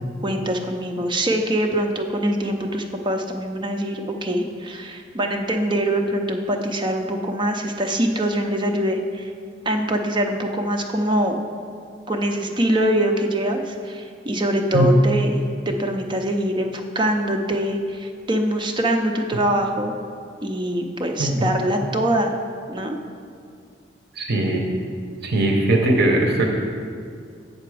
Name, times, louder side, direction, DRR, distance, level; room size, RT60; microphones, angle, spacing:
voice 1, 0.2-9.3 9.7-11.4 12.1-19.9 20.4-22.3 22.7-23.0, right 1 dB, 25° right, 3 dB, 0.6 m, -23 dB
voice 2, 24.2-24.6 25.2-26.4, right 1 dB, 55° right, 1 dB, 0.8 m, -19 dB
7.8 x 6.8 x 4.8 m, 2.3 s
head